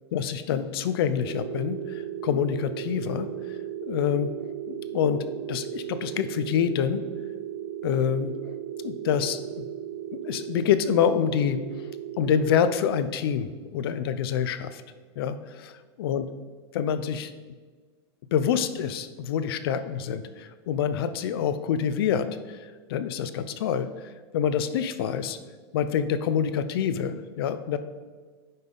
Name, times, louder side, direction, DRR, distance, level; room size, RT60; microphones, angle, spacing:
voice 1, 0.1-3.3 3.9-4.3 4.7-7.0 7.8-9.6 10.1-11.6 12.2-14.8 15.2-16.2 16.7-17.3 18.3-25.4 25.7-27.8, left 8 dB, 60° left, 11 dB, 0.5 m, -27 dB
sound 1, 1.2-13.0, right 11 dB, 55° right, 0.4 m, -36 dB
9.4 x 5.4 x 3.9 m, 1.5 s
supercardioid pair, 160°, 14 cm